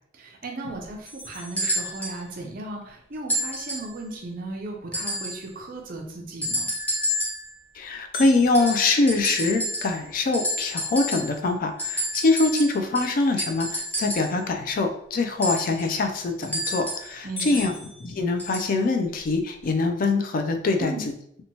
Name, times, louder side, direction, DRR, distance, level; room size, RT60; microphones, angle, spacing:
voice 1, 0.1-6.7 17.2-17.7 20.8-21.1, right 2 dB, 50° right, 1 dB, 0.5 m, -36 dB
sound 1, 1.1-2.6 8.1-10.3 10.8-10.9 11.4-11.5 12.2-12.5 16.1-16.5 16.9-17.0 17.4-19.1, left 1 dB, 65° left, 1.1 m, -41 dB
sound 2, 1.6-2.2 3.3-4.0 4.9-5.5 6.4-7.5 8.5-10.1 10.3-11.4 11.8-14.4 15.4-17.1 18.4-18.7 19.6-19.7, equal, 10° left, 0.7 m, -29 dB
voice 2, 7.7-17.7 18.0-20.9, left 3 dB, 45° left, 5 dB, 0.3 m, -24 dB
2.9 x 2.2 x 2.7 m, 0.71 s
head